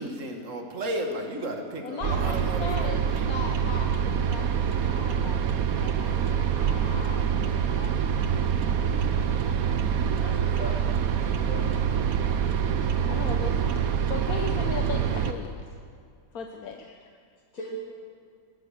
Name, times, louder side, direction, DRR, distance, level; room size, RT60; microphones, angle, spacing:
voice 1, 0.0-3.3, right 1 dB, 60° right, 3 dB, 2.3 m, -34 dB
voice 2, 1.8-8.3 13.0-15.6 16.3-17.1, left 5 dB, 85° left, 3 dB, 1.6 m, -38 dB
sound 1, 2.0-15.3, right 8 dB, 75° right, 1.4 m, -26 dB
voice 3, 10.2-10.8 11.1-11.7 17.5-17.8, equal, 70° left, -4 dB, 2.7 m, -39 dB
20.0 x 19.5 x 6.6 m, 2.2 s
omnidirectional pair, 1.5 m